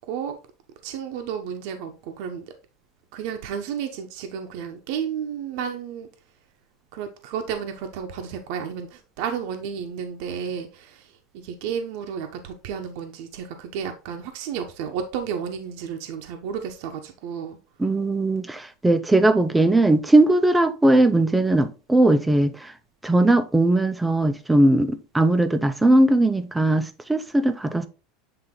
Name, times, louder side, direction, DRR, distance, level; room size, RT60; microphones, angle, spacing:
voice 1, 0.1-0.4 0.8-2.4 3.1-6.1 6.9-11.1 11.3-17.6, right 7 dB, 65° right, 0.9 m, -32 dB
voice 2, 17.8-22.5 23.0-27.9, right 1 dB, 5° right, 0.5 m, -19 dB
7.9 x 3.3 x 3.7 m
supercardioid pair, 145°, 0 cm